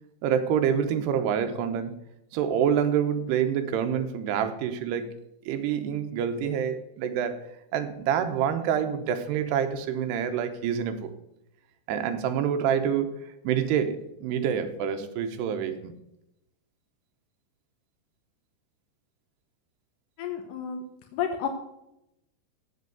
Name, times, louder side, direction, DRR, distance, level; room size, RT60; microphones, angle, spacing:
voice 1, 0.2-2.0 2.3-5.1 5.5-7.4 7.7-11.1 11.9-13.2 13.4-15.9, right 8 dB, 75° right, 7 dB, 2.9 m, -27 dB
voice 2, 20.2-20.8 21.1-21.5, left 8 dB, 80° left, 4 dB, 1.9 m, -30 dB
8.0 x 7.8 x 7.8 m, 0.85 s
omnidirectional pair, 5.1 m